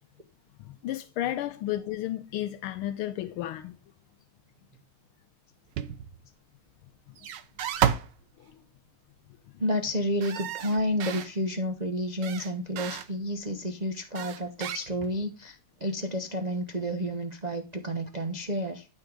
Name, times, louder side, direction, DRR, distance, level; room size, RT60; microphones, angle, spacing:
voice 1, 0.6-3.8 8.4-8.5, left 13 dB, 80° left, 1.5 m, -33 dB
sound 1, 5.8-6.2 7.2-8.2 10.2-11.3 12.2-13.1 14.2-15.3, right 9 dB, 65° right, 1.3 m, -31 dB
voice 2, 9.6-18.9, equal, 85° right, 0.3 m, -30 dB
12.0 x 4.5 x 5.1 m
omnidirectional pair, 2.3 m